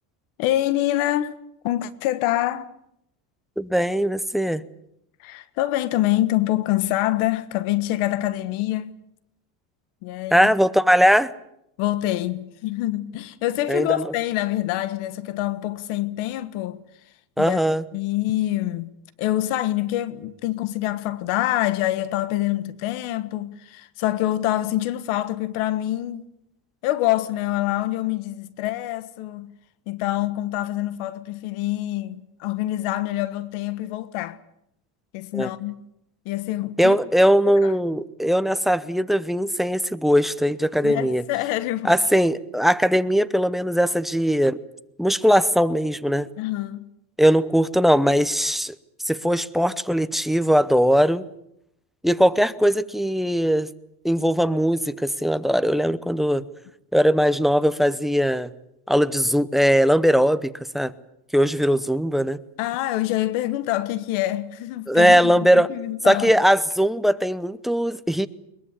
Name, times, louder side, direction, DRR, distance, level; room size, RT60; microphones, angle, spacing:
voice 1, 0.4-2.7 5.2-8.9 10.0-10.5 11.8-16.8 17.4-17.6 17.9-18.9 19.2-26.2 26.8-29.5 29.9-34.4 35.1-35.8 36.2-37.0 37.4-37.7 40.8-41.9 46.4-46.9 62.6-66.4, left 15 dB, 75° left, 1.5 m, -26 dB
voice 2, 3.6-4.6 10.3-11.3 13.7-14.0 17.4-17.8 35.3-35.5 36.8-41.2 41.8-44.6 45.0-46.3 47.2-48.7 49.0-51.2 52.0-53.7 54.0-56.4 56.9-58.5 58.9-60.9 61.3-62.4 64.9-65.7 66.0-68.3, equal, ahead, 0.8 m, -20 dB
22.0 x 21.5 x 8.4 m
cardioid pair, 125°, 49 cm